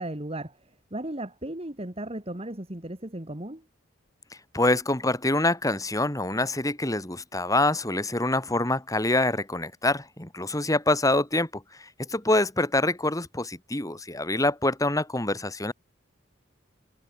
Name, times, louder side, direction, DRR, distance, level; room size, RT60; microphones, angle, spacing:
voice 1, 0.0-3.7, right 1 dB, 30° right, 2.4 m, -36 dB
voice 2, 4.5-15.7, left 2 dB, 20° left, 3.9 m, -25 dB
head